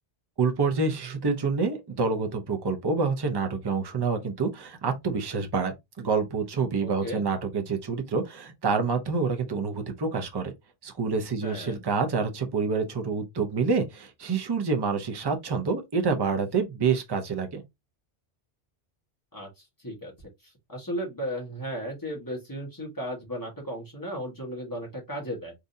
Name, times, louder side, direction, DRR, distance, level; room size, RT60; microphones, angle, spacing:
voice 1, 0.4-10.5 10.8-17.6, right 4 dB, 30° right, 0.5 m, -27 dB
voice 2, 6.8-7.2 11.4-11.8 19.3-20.1 20.7-25.5, equal, 20° left, 1.2 m, -35 dB
3.6 x 2.7 x 2.5 m
omnidirectional pair, 1.2 m